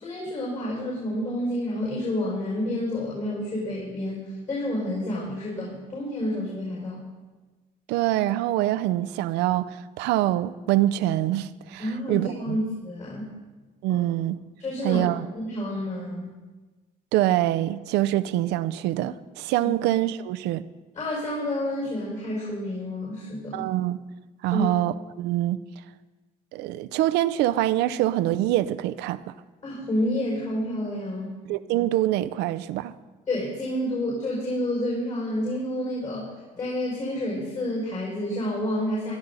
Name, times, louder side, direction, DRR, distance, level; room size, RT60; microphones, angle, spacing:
voice 1, 0.0-7.0 11.8-13.3 13.9-14.0 14.6-15.1 15.3-16.3 19.6-19.7 20.9-23.7 24.5-24.7 29.6-31.3 33.3-39.1, left 1 dB, 45° left, 5.4 m, -29 dB
voice 2, 7.9-12.6 13.8-14.4 14.8-15.3 17.1-20.6 23.5-24.0 24.4-25.6 26.5-29.2 31.5-32.9, right 14 dB, 90° right, 0.6 m, -25 dB
16.0 x 12.5 x 4.0 m
cardioid pair, 110°, 17 cm